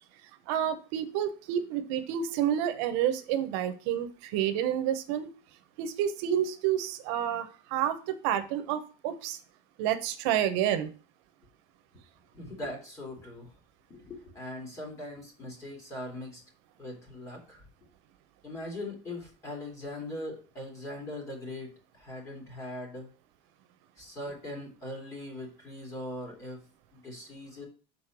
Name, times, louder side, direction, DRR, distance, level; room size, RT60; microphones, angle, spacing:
voice 1, 0.5-5.3 5.8-9.4 9.8-10.9, right 10 dB, 75° right, 9 dB, 0.8 m, -29 dB
voice 2, 12.3-13.5 13.9-16.4 16.8-17.6 18.4-23.1 24.0-26.6 26.9-27.7, left 1 dB, 20° left, 1 dB, 2.4 m, -40 dB
6.4 x 4.1 x 6.0 m, 0.36 s
cardioid pair, 170°, 15 cm